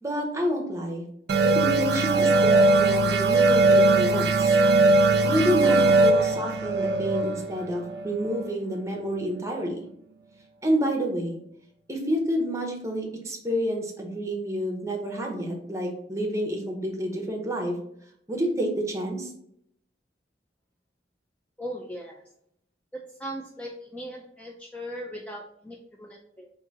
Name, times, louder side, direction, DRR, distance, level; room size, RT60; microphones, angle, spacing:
voice 1, 0.0-1.1 1.4-4.6 5.2-9.8 10.6-11.4 11.9-17.8 18.3-19.3, equal, 15° right, 1 dB, 0.7 m, -29 dB
sound 1, 1.3-8.6, right 2 dB, 70° right, 0.4 m, -20 dB
voice 2, 21.6-22.2 22.9-26.5, equal, 10° left, -1 dB, 0.3 m, -38 dB
3.7 x 2.6 x 3.9 m, 0.72 s
head